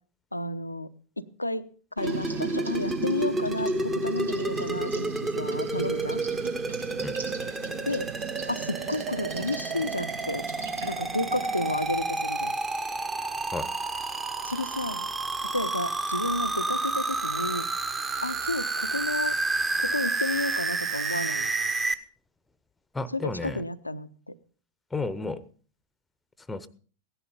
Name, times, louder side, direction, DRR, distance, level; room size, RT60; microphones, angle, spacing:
voice 1, 0.3-0.9 1.2-1.7 2.0-6.2 7.8-8.1 8.5-10.5 10.8-12.6 14.4-15.1 15.4-17.7 18.2-19.3 19.8-21.5 23.1-24.3, left 2 dB, 85° left, 13 dB, 0.7 m, -31 dB
sound 1, 2.0-21.9, right 3 dB, 15° right, 1.1 m, -30 dB
sound 2, 2.0-11.8, right 5 dB, 70° right, 2.0 m, -38 dB
voice 2, 22.9-23.6 24.9-25.4 26.5-26.7, left 3 dB, 10° left, 17 dB, 0.9 m, -32 dB
16.5 x 11.0 x 5.3 m, 0.42 s
figure-of-eight pair, 90°, 0 cm